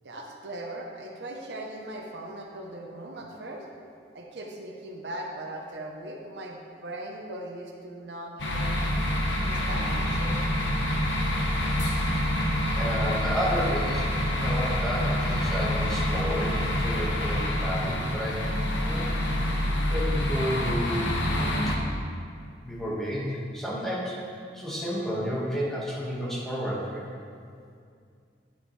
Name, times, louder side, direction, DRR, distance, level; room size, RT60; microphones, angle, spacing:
voice 1, 0.0-3.6 4.1-8.8 9.4-10.4, right 1 dB, 70° right, 0 dB, 0.9 m, -39 dB
sound 1, 8.4-21.8, equal, 80° left, 1.1 m, -27 dB
voice 2, 12.7-18.4 18.8-19.0 19.9-21.3 21.7-21.8 22.6-27.1, equal, ahead, -7 dB, 1.6 m, -31 dB
9.4 x 8.2 x 3.3 m, 2.3 s
head